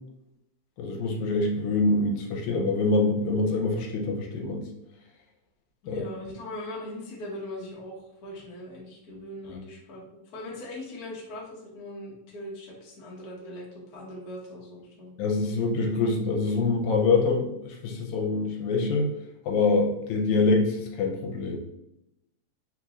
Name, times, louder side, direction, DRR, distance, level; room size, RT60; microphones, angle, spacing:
voice 1, 0.8-4.7 5.9-6.0 15.2-19.1 19.5-21.6, left 3 dB, 80° left, 1 dB, 2.0 m, -25 dB
voice 2, 5.8-10.0 10.3-15.1, left 1 dB, 60° left, -4 dB, 0.9 m, -40 dB
4.6 x 3.0 x 2.5 m, 0.85 s
omnidirectional pair, 3.4 m